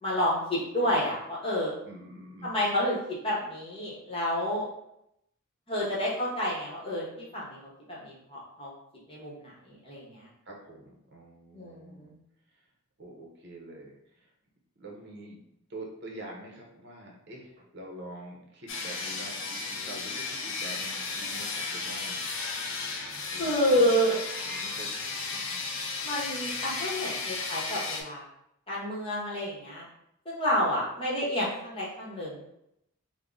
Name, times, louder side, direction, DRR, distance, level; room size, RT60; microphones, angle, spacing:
voice 1, 0.0-1.7 2.4-4.7 5.7-7.6 7.9-8.7 9.1-10.3 11.5-12.1 23.4-24.2 26.0-28.2 28.7-29.8 30.2-32.4, equal, 25° left, -6 dB, 1.0 m, -29 dB
voice 2, 1.9-2.5 10.5-12.1 13.0-14.3 14.8-15.4 15.7-22.2 23.3-24.1 24.4-25.9, right 1 dB, 55° right, -1 dB, 0.8 m, -46 dB
sound 1, 18.7-28.0, left 4 dB, 65° left, 0.6 m, -34 dB
3.6 x 2.1 x 3.7 m, 0.80 s
head